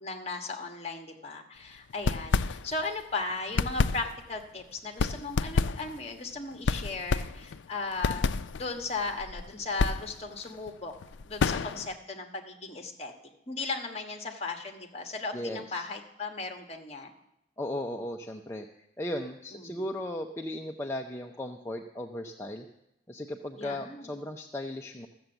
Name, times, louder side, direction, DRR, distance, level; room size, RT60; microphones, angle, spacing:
voice 1, 0.0-8.3 8.6-10.9 11.2-13.1 13.5-17.1 19.5-19.8 23.6-24.1, left 3 dB, 35° left, 4 dB, 1.3 m, -36 dB
sound 1, 1.9-3.0 3.3-12.0, left 4 dB, 80° left, 0.4 m, -30 dB
voice 2, 15.3-15.9 17.6-18.7 19.0-22.7 23.1-25.1, left 1 dB, 15° left, 2 dB, 0.5 m, -36 dB
14.0 x 7.1 x 7.8 m, 0.85 s
head